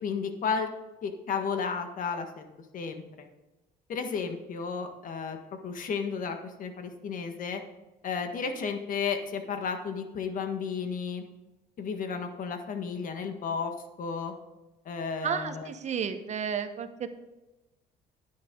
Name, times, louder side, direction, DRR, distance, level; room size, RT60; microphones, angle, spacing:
voice 1, 0.0-0.7 1.0-2.5 2.7-3.0 3.9-7.6 8.0-11.3 11.8-13.7 14.0-14.3 14.8-15.7, left 5 dB, 55° left, 6 dB, 1.6 m, -33 dB
voice 2, 15.2-17.1, right 7 dB, 45° right, 9 dB, 1.1 m, -32 dB
10.0 x 10.0 x 3.8 m, 1.1 s
cardioid pair, 110°, 17 cm